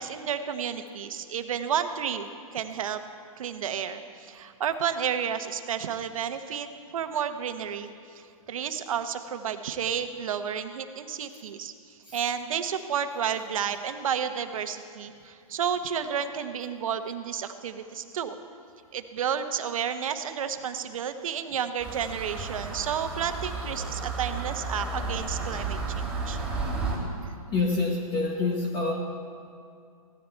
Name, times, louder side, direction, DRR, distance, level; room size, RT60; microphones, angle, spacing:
voice 1, 0.0-3.0 3.4-6.7 6.9-7.9 8.1-18.4 18.9-26.4, right 8 dB, 65° right, 8 dB, 1.1 m, -31 dB
sound 1, 21.8-27.0, right 3 dB, 5° right, 2.6 m, -32 dB
voice 2, 27.5-28.9, left 3 dB, 25° left, 0 dB, 1.3 m, -26 dB
16.0 x 13.0 x 4.6 m, 2.3 s
hypercardioid pair, 135°, 19 cm